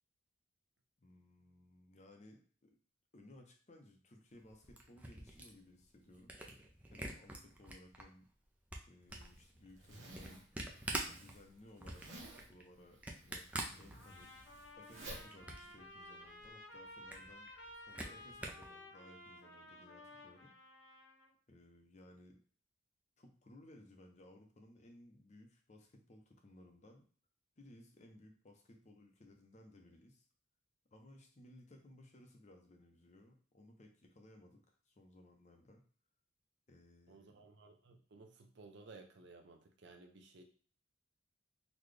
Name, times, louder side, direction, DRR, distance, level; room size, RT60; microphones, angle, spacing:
voice 1, 1.0-2.8 3.1-6.6 6.9-8.3 8.9-10.4 11.2-14.3 14.8-20.5 21.5-22.4 23.2-27.0 27.6-30.2 30.9-35.8 36.7-37.5, left 1 dB, 35° left, 3 dB, 0.6 m, -60 dB
Camera, 4.4-8.0 8.4-14.5 14.9-15.8 16.1-16.2 16.5-16.6 16.9-18.7, right 2 dB, 5° right, 0.4 m, -46 dB
Zipper (clothing), 9.1-16.5, right 1 dB, 75° right, 0.9 m, -55 dB
Trumpet, 13.9-21.3, left 1 dB, 75° left, 0.8 m, -55 dB
voice 2, 37.1-40.4, right 3 dB, 60° right, 4 dB, 0.6 m, -57 dB
4.0 x 2.2 x 3.2 m, 0.43 s
head